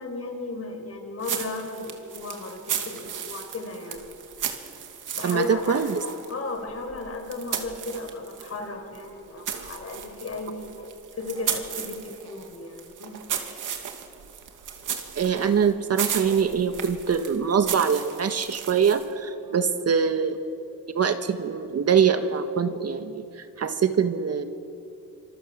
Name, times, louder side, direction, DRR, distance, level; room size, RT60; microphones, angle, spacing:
voice 1, 0.0-4.0 5.1-10.9 11.2-13.2 19.4-19.6, left 2 dB, 45° left, 4 dB, 5.4 m, -35 dB
sound 1, 1.2-8.6 8.9-19.2, right 8 dB, 70° right, 2.7 m, -35 dB
voice 2, 5.2-6.0 15.2-20.4 20.9-24.4, right 7 dB, 50° right, 8 dB, 1.6 m, -24 dB
26.5 x 26.5 x 7.5 m, 2.6 s
cardioid pair, 115°, 32 cm